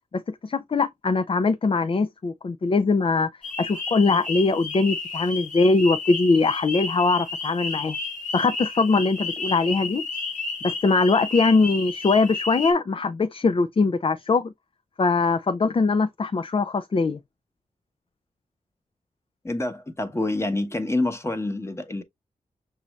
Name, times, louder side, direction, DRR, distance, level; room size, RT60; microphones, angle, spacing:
voice 1, 0.1-3.3 3.6-8.0 8.3-10.1 10.6-14.5 15.0-17.2, left 3 dB, 40° left, 0.5 m, -22 dB
sound 1, 3.4-12.7, left 3 dB, 65° left, 1.1 m, -32 dB
voice 2, 19.4-22.0, left 2 dB, 20° left, 1.0 m, -27 dB
6.1 x 2.6 x 3.1 m
wide cardioid pair, 85°, 14 cm